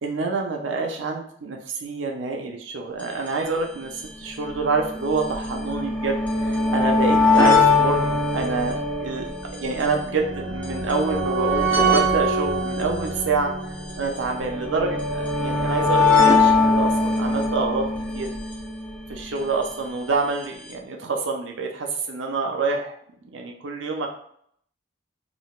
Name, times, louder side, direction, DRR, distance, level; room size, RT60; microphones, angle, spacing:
voice 1, 0.0-9.2 9.6-13.5 14.0-17.8 18.1-18.3 19.1-23.0 23.3-24.1, right 3 dB, 85° right, 2 dB, 0.5 m, -27 dB
sound 1, 3.0-3.1 3.3-3.4 4.2-19.5 20.4-20.5 20.7-20.8, left 2 dB, 10° left, 0.5 m, -22 dB
3.8 x 2.0 x 2.3 m, 0.65 s
head